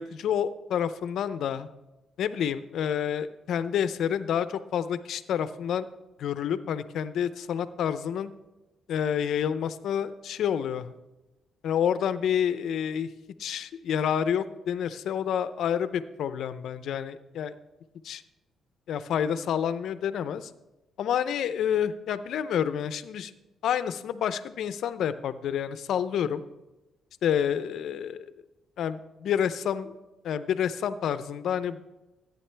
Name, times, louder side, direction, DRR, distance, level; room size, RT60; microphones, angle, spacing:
voice 1, 0.0-1.7 2.2-5.9 6.2-8.3 8.9-10.9 11.6-13.1 13.4-17.5 18.0-18.2 18.9-20.5 21.0-23.3 23.6-26.4 27.2-28.2 28.8-30.0 30.2-31.8, left 8 dB, 75° left, 13 dB, 0.6 m, -28 dB
14.5 x 9.2 x 3.4 m, 1.1 s
cardioid pair, 90°, 0 cm